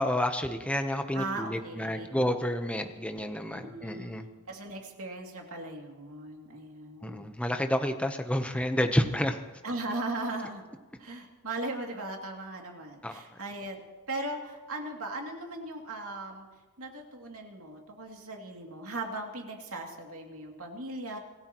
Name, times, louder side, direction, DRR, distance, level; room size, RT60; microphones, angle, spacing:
voice 1, 0.0-4.3 7.0-9.4 13.0-13.2, left 1 dB, 5° left, 6 dB, 0.9 m, -29 dB
voice 2, 1.1-2.1 3.5-7.3 9.6-10.6 11.0-13.8 14.1-16.5 16.8-21.2, right 2 dB, 75° right, 1 dB, 2.7 m, -38 dB
26.0 x 16.0 x 3.0 m, 1.2 s
head